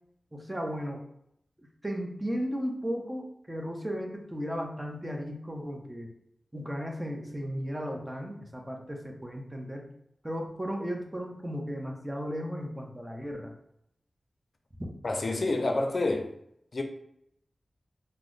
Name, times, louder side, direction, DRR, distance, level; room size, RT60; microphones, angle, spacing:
voice 1, 0.3-1.0 1.8-6.1 6.5-9.9 10.2-13.5 14.8-14.9, equal, 15° right, 0.7 m, -35 dB
voice 2, 15.0-16.3 16.7-16.8, left 2 dB, 60° left, 0.5 m, -28 dB
2.9 x 2.1 x 3.8 m
cardioid pair, 55°, 0 cm